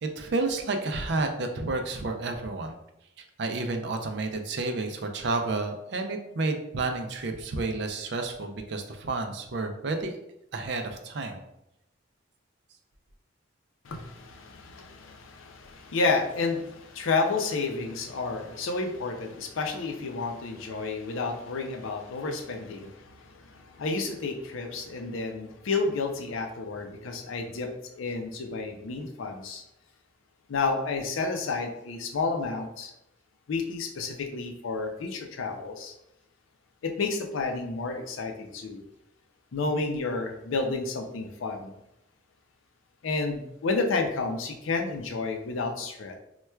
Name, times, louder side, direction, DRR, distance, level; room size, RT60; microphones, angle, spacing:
voice 1, 0.0-2.7 3.2-10.2 10.5-11.4, right 3 dB, 55° right, 5 dB, 0.4 m, -30 dB
voice 2, 13.8-29.6 30.5-32.9 33.5-35.9 36.8-38.8 39.5-41.7 43.0-46.2, left 3 dB, 80° left, 4 dB, 0.5 m, -31 dB
4.3 x 2.2 x 2.2 m, 0.84 s
head